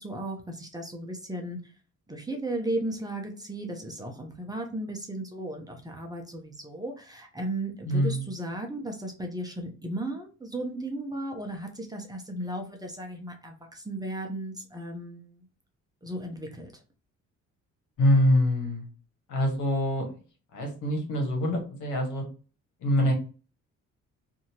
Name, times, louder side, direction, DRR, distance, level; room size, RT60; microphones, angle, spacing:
voice 1, 0.0-1.7 2.1-15.4 16.0-16.7, right 1 dB, 15° right, 3 dB, 0.7 m, -35 dB
voice 2, 7.9-8.2 18.0-18.9 19.3-20.1 20.5-22.2 22.8-23.1, left 1 dB, 75° left, 1 dB, 1.4 m, -24 dB
2.8 x 2.7 x 2.7 m, 0.36 s
cardioid pair, 90°, 30 cm